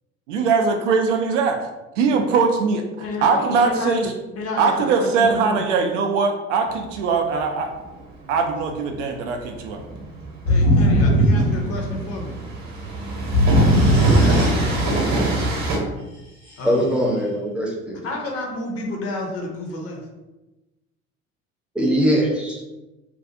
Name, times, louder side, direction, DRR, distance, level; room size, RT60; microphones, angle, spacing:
voice 1, 0.3-1.6 2.0-2.8 3.2-4.1 4.6-7.7 8.3-9.8, right 5 dB, 65° right, 4 dB, 0.5 m, -21 dB
voice 2, 2.1-2.5 3.0-3.9 4.4-5.6 10.5-12.4 13.7-15.7 16.6-16.9 18.0-20.0, left 2 dB, 35° left, 0 dB, 0.7 m, -31 dB
Train, 6.7-15.8, right 2 dB, 45° right, 0.9 m, -25 dB
sound 1, 10.5-12.2 13.3-15.0, equal, 75° left, 1.2 m, -18 dB
voice 3, 16.6-18.0 21.7-22.6, equal, 5° right, -3 dB, 0.6 m, -21 dB
2.6 x 2.3 x 2.5 m, 1.0 s
figure-of-eight pair, 60°, 40 cm